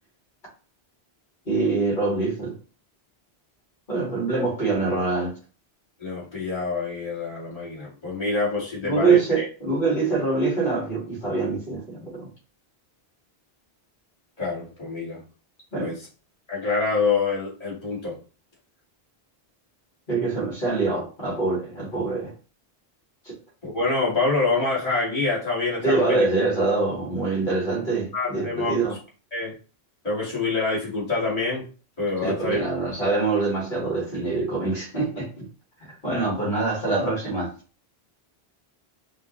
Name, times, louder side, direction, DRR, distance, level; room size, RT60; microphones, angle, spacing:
voice 1, 1.5-2.6 3.9-5.4 8.9-12.3 15.7-15.9 20.1-22.3 23.2-23.3 25.8-28.9 32.2-35.5 36.0-37.5, right 3 dB, 50° left, 2.5 m, -24 dB
voice 2, 6.0-9.4 14.4-15.2 15.8-16.0 16.5-18.2 23.6-26.2 28.1-28.7 29.3-29.5 30.0-31.6 32.0-32.6, left 3 dB, 35° left, 2.5 m, -26 dB
5.5 x 2.8 x 3.2 m
omnidirectional pair, 1.1 m